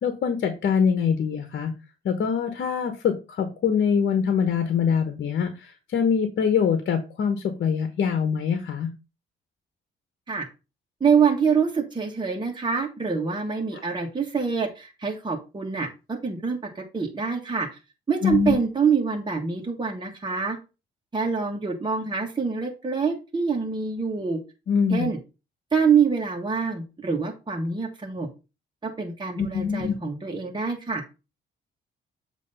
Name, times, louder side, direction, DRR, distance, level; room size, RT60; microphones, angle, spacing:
voice 1, 0.0-1.7 2.0-8.9 18.2-18.6 24.7-25.1 29.4-29.9, left 6 dB, 60° left, 7 dB, 1.1 m, -24 dB
voice 2, 11.0-17.7 18.1-20.6 21.1-24.4 24.9-25.2 25.7-28.3 28.8-31.0, right 5 dB, 25° right, 1 dB, 1.6 m, -25 dB
7.6 x 3.1 x 5.4 m, 0.30 s
cardioid pair, 90°, 20 cm